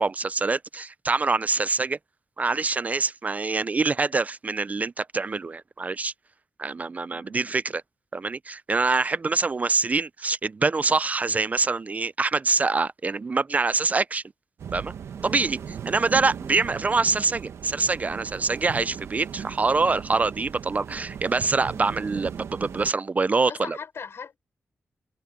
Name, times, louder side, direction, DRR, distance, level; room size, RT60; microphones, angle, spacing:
voice 1, 0.0-2.0 2.4-6.1 6.6-7.8 8.1-14.2 14.7-14.9 15.2-15.6 15.9-23.8, right 4 dB, 35° right, 0.4 m, -25 dB
voice 2, 7.1-7.6 15.2-15.8 23.5-24.4, left 6 dB, 65° left, 6.2 m, -41 dB
sound 1, 14.6-22.9, right 7 dB, 85° right, 1.1 m, -38 dB
cardioid pair, 95°, 5 cm